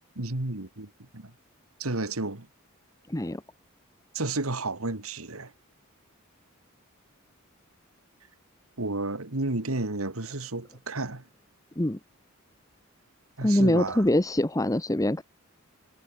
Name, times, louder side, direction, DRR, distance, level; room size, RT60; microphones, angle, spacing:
voice 1, 0.2-1.3 1.8-2.5 4.1-5.5 8.8-11.2 13.4-14.0, right 2 dB, 80° right, 2.3 m, -32 dB
voice 2, 3.1-3.4 11.8-12.0 13.4-15.2, left 1 dB, 15° left, 1.0 m, -24 dB
head